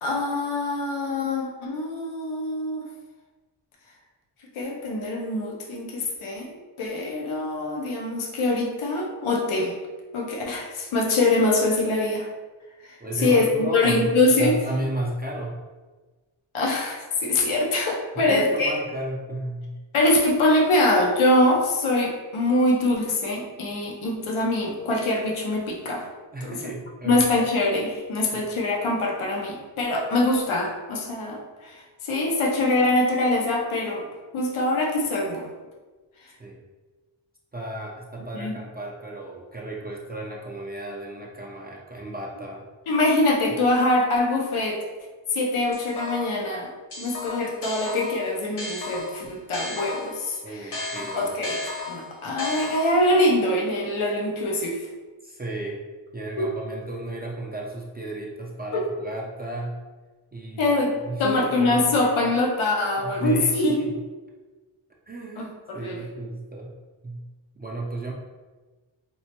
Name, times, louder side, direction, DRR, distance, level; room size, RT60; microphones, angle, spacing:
voice 1, 0.0-2.8 4.5-9.7 10.1-12.3 12.8-14.6 16.5-18.7 19.9-26.1 26.4-26.6 27.0-34.0 34.3-35.5 38.3-38.5 42.9-44.8 45.3-46.7 47.0-51.6 51.9-54.8 56.4-56.5 58.7-58.8 60.6-63.9 65.4-66.1, left 2 dB, 85° left, -1 dB, 0.7 m, -24 dB
voice 2, 13.0-15.6 18.2-19.8 26.3-27.2 28.2-28.4 36.4-36.6 37.5-42.7 50.4-51.3 55.2-55.8 56.1-59.8 60.3-60.7 61.0-62.3 63.0-63.9 65.1-66.7 67.0-67.2 67.6-68.1, right 1 dB, 20° right, -3 dB, 0.4 m, -33 dB
sound 1, 45.7-46.4 46.9-50.2 50.7-53.2, left 2 dB, 55° left, 1.0 m, -34 dB
4.5 x 2.1 x 2.8 m, 1.3 s
wide cardioid pair, 85°, 48 cm